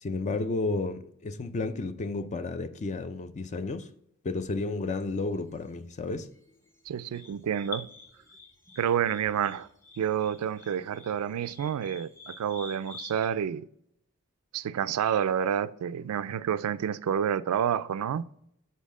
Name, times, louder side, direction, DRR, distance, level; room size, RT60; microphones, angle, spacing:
voice 1, 0.0-3.9 4.2-6.3, left 3 dB, 35° left, 0.4 m, -32 dB
sound 1, 4.8-13.3, left 4 dB, 10° left, 0.8 m, -48 dB
voice 2, 6.9-7.9 8.8-9.7 10.0-13.7 14.5-18.3, right 8 dB, 80° right, 0.3 m, -29 dB
7.3 x 4.2 x 3.7 m
head